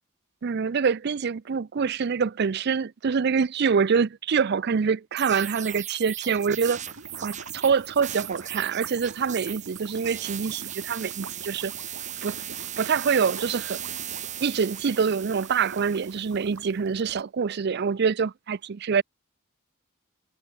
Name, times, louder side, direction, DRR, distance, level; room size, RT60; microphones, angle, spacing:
voice 1, 0.4-6.8 7.2-11.7 12.2-12.4 12.8-13.8 14.4-19.0, right 6 dB, 55° right, 0.5 m, -25 dB
sound 1, 5.2-16.6, right 11 dB, 35° right, 1.4 m, -37 dB
sound 2, 6.3-17.2, right 3 dB, 75° right, 2.1 m, -46 dB
head